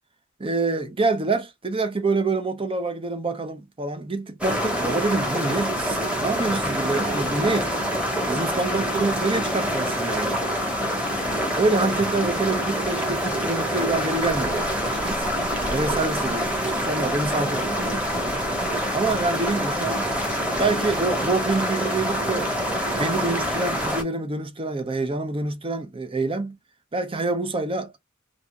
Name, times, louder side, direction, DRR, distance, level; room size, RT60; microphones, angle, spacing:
voice 1, 0.4-7.7 8.3-10.5 11.5-15.2 15.7-18.1 18.9-20.1 20.6-22.5 22.9-26.6 26.9-27.9, right 3 dB, 25° right, 0.7 m, -26 dB
sound 1, 4.4-24.0, equal, 5° right, 1.3 m, -26 dB
4.0 x 2.9 x 2.4 m
head